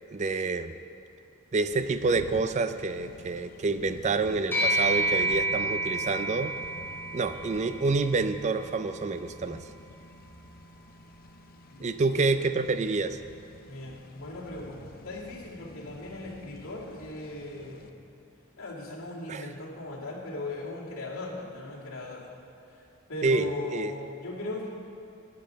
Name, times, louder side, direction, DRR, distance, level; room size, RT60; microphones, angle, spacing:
voice 1, 0.1-0.7 1.5-6.5 7.1-9.6 11.8-13.2 19.3-19.5 23.2-23.9, right 3 dB, 35° right, 11 dB, 0.4 m, -28 dB
sound 1, 1.7-17.9, left 3 dB, 45° left, 0.5 m, -50 dB
sound 2, 4.5-14.1, right 1 dB, 10° left, 2.0 m, -33 dB
voice 2, 11.7-12.3 13.7-17.9 18.6-22.2 23.1-24.7, left 2 dB, 80° left, -6 dB, 2.4 m, -38 dB
10.5 x 9.1 x 5.2 m, 2.8 s
head